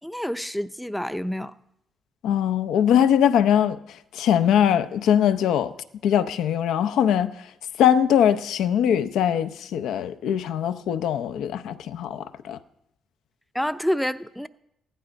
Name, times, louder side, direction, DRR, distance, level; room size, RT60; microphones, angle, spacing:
voice 1, 0.0-1.5 13.5-14.5, equal, 5° left, 0.5 m, -28 dB
voice 2, 2.2-3.8 4.1-5.7 6.0-7.3 7.8-12.6, left 9 dB, 85° left, 0.6 m, -21 dB
15.0 x 11.5 x 5.2 m
cardioid pair, 90°, 0 cm